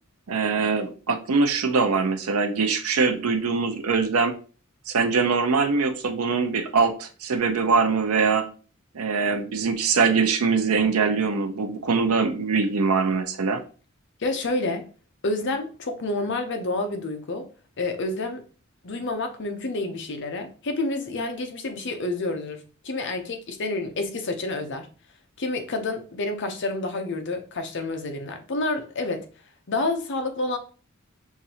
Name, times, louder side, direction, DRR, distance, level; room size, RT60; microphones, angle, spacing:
voice 1, 0.3-4.3 4.9-8.5 8.9-13.6, right 4 dB, 85° right, 0.6 m, -23 dB
voice 2, 14.2-14.9 15.2-17.5 17.8-18.4 18.8-24.9 25.4-29.2 29.7-30.6, left 2 dB, 55° left, 0.7 m, -29 dB
5.9 x 2.6 x 2.8 m
head